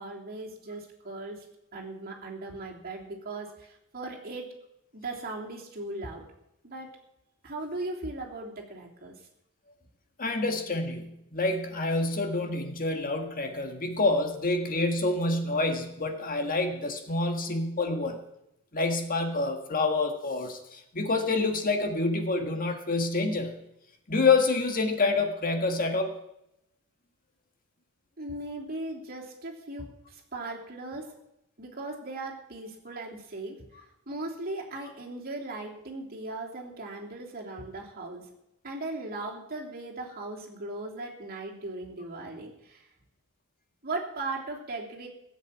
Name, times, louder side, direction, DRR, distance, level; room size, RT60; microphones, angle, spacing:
voice 1, 0.0-1.4 1.7-4.5 4.9-6.2 6.6-6.9 7.4-9.1 28.2-31.1 31.6-38.3 38.6-42.9 43.8-45.1, right 2 dB, 45° right, -1 dB, 3.1 m, -38 dB
voice 2, 10.2-18.2 18.7-23.6 24.1-26.1, left 3 dB, 40° left, 5 dB, 1.6 m, -27 dB
17.0 x 7.8 x 8.7 m, 0.82 s
head